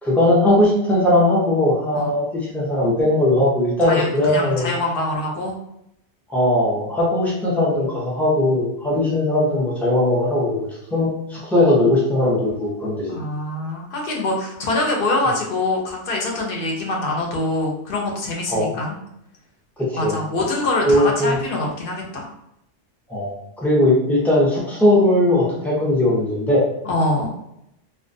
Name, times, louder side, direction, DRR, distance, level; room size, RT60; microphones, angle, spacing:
voice 1, 0.0-4.7 6.3-13.2 18.5-18.7 19.8-20.2 20.8-21.4 23.1-26.6, left 1 dB, 5° left, -6 dB, 0.3 m, -19 dB
voice 2, 3.8-5.5 10.9-11.0 13.1-19.0 20.0-22.3 26.8-27.3, left 2 dB, 55° left, 0 dB, 0.7 m, -24 dB
2.3 x 2.2 x 2.6 m, 0.81 s
omnidirectional pair, 1.3 m